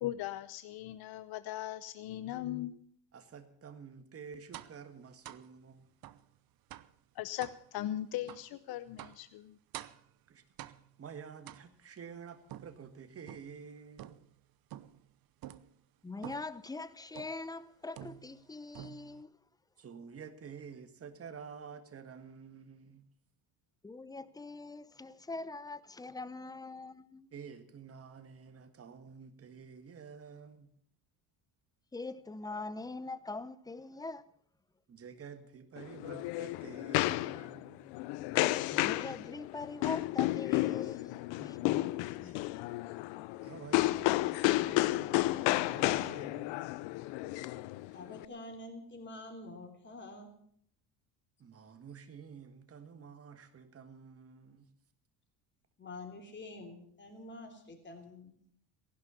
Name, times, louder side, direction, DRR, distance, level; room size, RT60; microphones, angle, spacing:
voice 1, 0.0-2.8 7.2-9.5, left 13 dB, 60° left, 0.8 m, -39 dB
voice 2, 3.1-5.9 10.3-10.4 11.0-14.1 19.8-23.0 27.3-30.7 34.9-37.9 42.1-42.7 43.4-46.6 51.4-54.7, right 6 dB, 35° right, 1.8 m, -50 dB
sound 1, 4.5-4.8 5.2-5.5 6.0-6.3 6.7-7.0 7.4-7.6 8.3-8.5 9.0-9.3 9.7-10.1 10.6-11.0 11.5-12.0 12.5-13.6 14.0-14.4 14.7-15.1 15.4-15.7 16.2-16.6 17.2-17.5 18.0-18.5 18.7-19.2, right 13 dB, 55° right, 0.8 m, -48 dB
voice 3, 16.0-19.3 23.8-27.3 31.9-34.3 38.7-42.4, left 3 dB, 10° left, 0.6 m, -43 dB
sound 2, 35.8-48.2, left 19 dB, 90° left, 0.7 m, -32 dB
voice 4, 47.9-50.3 55.8-58.4, left 2 dB, 25° left, 3.5 m, -47 dB
15.5 x 11.5 x 6.9 m
cardioid pair, 115°, 43 cm